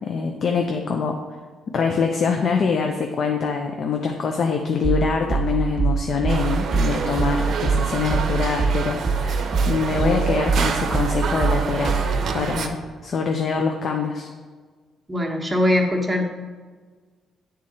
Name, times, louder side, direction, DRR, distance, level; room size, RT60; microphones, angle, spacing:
voice 1, 0.0-1.1 1.7-14.3, left 5 dB, 55° left, 2 dB, 0.6 m, -24 dB
sound 1, 4.8-12.3, right 5 dB, 45° right, 1.1 m, -24 dB
sound 2, 6.3-12.7, right 5 dB, 65° right, 0.6 m, -28 dB
voice 2, 15.1-16.3, left 1 dB, 15° right, 0 dB, 1.1 m, -21 dB
8.6 x 3.7 x 4.2 m, 1.5 s
cardioid pair, 90°, 0 cm